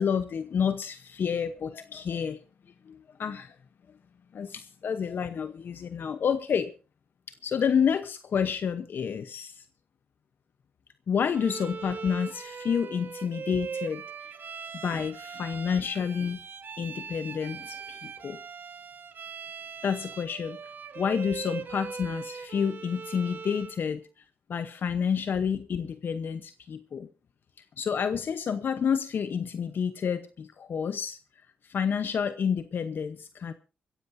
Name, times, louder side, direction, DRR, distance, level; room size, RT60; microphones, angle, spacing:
voice 1, 0.0-2.4 2.9-3.6 4.3-6.7 7.3-9.6 11.1-14.0 14.8-16.4 16.8-18.4 19.8-20.6 21.0-24.0 24.5-27.1 27.8-31.2 31.6-33.5, left 7 dB, 65° left, 11 dB, 0.9 m, -29 dB
Bowed string instrument, 11.3-23.8, right 6 dB, 60° right, 1.4 m, -40 dB
24.0 x 15.5 x 2.7 m, 0.31 s
cardioid pair, 70°, 4 cm